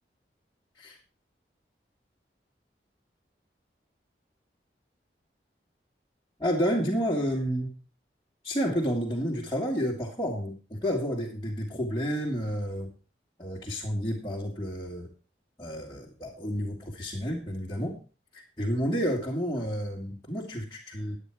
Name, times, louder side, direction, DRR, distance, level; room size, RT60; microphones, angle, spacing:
voice 1, 6.4-7.7 8.4-12.9 13.4-15.1 15.6-18.0 18.3-21.2, equal, 20° left, -5 dB, 2.0 m, -30 dB
10.0 x 9.2 x 4.8 m, 0.35 s
head